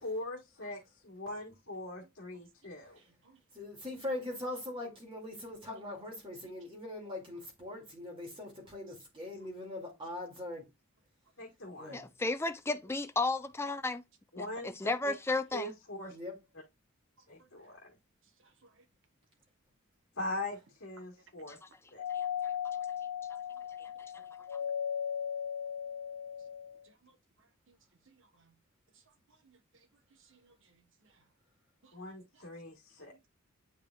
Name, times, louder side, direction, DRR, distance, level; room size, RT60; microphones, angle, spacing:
voice 1, 0.0-3.0 11.4-12.1 14.3-14.7 15.0-15.1 15.5-16.1 17.3-17.9 20.1-21.6 21.9-22.0 31.9-33.1, left 1 dB, 65° left, 1.5 m, -41 dB
voice 2, 3.5-10.6 11.7-12.0 16.1-16.3, left 1 dB, 25° right, 2.4 m, -41 dB
voice 3, 11.9-14.0 14.4-15.7 22.1-22.5 23.8-23.9, left 3 dB, 10° left, 0.4 m, -34 dB
Doorbell, 22.0-26.8, left 8 dB, 90° left, 0.3 m, -37 dB
voice 4, 28.1-28.5 29.4-29.6 30.3-30.8 31.8-32.0 32.3-32.4, right 4 dB, 60° right, 1.1 m, -65 dB
8.5 x 4.8 x 2.4 m
head